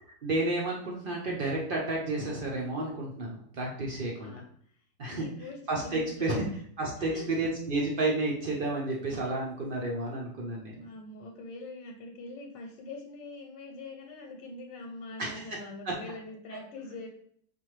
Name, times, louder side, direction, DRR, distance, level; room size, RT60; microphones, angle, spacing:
voice 1, 0.2-4.3 5.0-6.4 6.8-10.8 15.2-15.4 15.8-15.9 16.5-16.6, right 2 dB, 70° right, -2 dB, 0.5 m, -31 dB
voice 2, 4.0-4.4 5.1-5.6 5.8-6.4 7.1-7.4 10.7-17.1, left 2 dB, 90° left, 1 dB, 1.3 m, -43 dB
5.4 x 2.5 x 3.1 m, 0.64 s
omnidirectional pair, 1.9 m